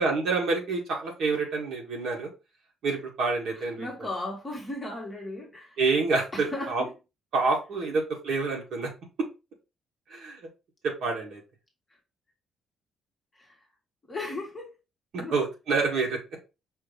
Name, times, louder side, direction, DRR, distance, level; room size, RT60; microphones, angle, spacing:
voice 1, 0.0-2.3 2.8-3.9 5.8-6.8 7.3-8.9 10.1-10.4 10.8-11.4 15.1-16.2, right 3 dB, 55° right, 1.5 m, -27 dB
voice 2, 3.5-5.8 6.3-6.9 7.9-8.0 13.3-13.6 14.1-14.7 15.2-15.3, left 2 dB, 15° left, 1.3 m, -36 dB
5.5 x 2.7 x 3.3 m
cardioid pair, 170°, 0 cm